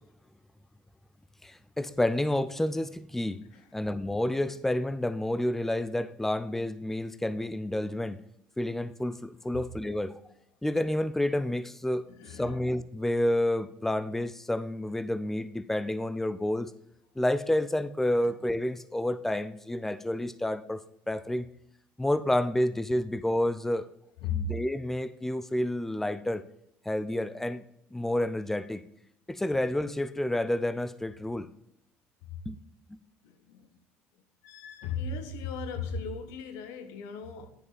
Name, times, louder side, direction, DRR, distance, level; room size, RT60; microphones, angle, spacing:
voice 1, 1.4-3.5 3.7-8.2 8.6-10.2 10.6-16.7 17.2-20.8 21.1-21.5 22.0-23.9 24.3-26.4 26.9-27.6 27.9-28.8 29.3-31.5 32.5-32.6, left 1 dB, 5° left, 0.5 m, -29 dB
voice 2, 12.1-12.6 24.2-24.5 33.2-33.7 34.4-37.5, left 5 dB, 80° left, 1.0 m, -36 dB
9.5 x 5.4 x 4.0 m
supercardioid pair, 100°, 5 cm